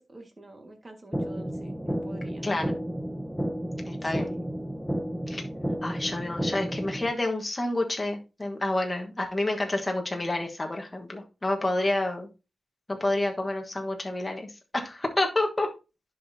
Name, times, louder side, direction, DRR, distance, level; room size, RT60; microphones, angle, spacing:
voice 1, 0.0-2.5 4.1-4.4, right 1 dB, 25° right, 4 dB, 1.6 m, -47 dB
sound 1, 1.1-7.1, equal, ahead, 0.6 m, -32 dB
voice 2, 3.9-4.3 5.3-5.4 5.8-12.3 12.9-14.5 14.7-15.7, left 2 dB, 20° left, 2 dB, 1.3 m, -29 dB
10.5 x 5.8 x 2.7 m, 0.29 s
wide cardioid pair, 140°, 0 cm